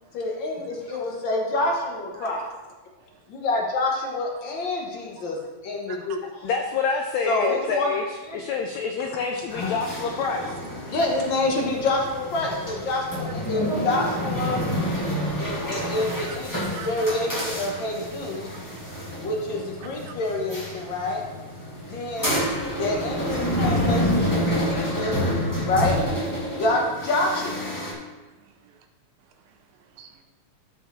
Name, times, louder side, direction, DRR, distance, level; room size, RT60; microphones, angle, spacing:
voice 1, 0.1-2.4 3.3-5.4 5.6-6.2 7.3-7.9 8.2-8.4 9.5-9.7 10.9-14.6 15.4-18.5 19.2-21.2 21.9-22.3 22.7-25.2 25.7-26.0 26.6-27.7, left 2 dB, 65° left, -1 dB, 1.2 m, -27 dB
voice 2, 5.9-6.2 10.4-10.5 15.3-15.4 16.3-16.4 16.7-16.9 20.1-20.2 23.6-23.7 26.4-26.6 28.3-28.7 29.2-30.1, right 7 dB, 90° right, 4 dB, 2.7 m, -46 dB
voice 3, 6.4-8.0 8.3-10.5, left 5 dB, 85° left, 3 dB, 1.5 m, -27 dB
sound 1, 9.5-27.9, equal, 10° left, 1.3 m, -28 dB
14.5 x 5.9 x 3.2 m, 1.2 s
omnidirectional pair, 4.0 m